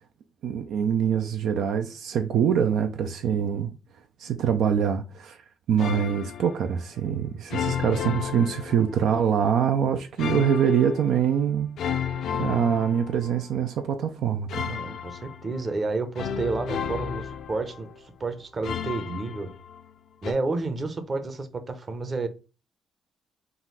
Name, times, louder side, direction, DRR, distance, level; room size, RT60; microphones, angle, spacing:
voice 1, 0.4-3.7 4.2-5.4 5.7-11.7 12.3-14.7, right 8 dB, 75° right, 0.4 m, -24 dB
sound 1, 5.8-6.6 7.5-9.3 10.2-11.2 11.8-13.5 14.5-15.7 16.2-18.0 18.6-19.9 20.2-20.3, left 8 dB, 70° left, 0.5 m, -33 dB
voice 2, 14.7-19.5 20.2-22.3, right 3 dB, 35° right, 0.8 m, -30 dB
3.9 x 2.5 x 4.1 m
cardioid pair, 90°, 0 cm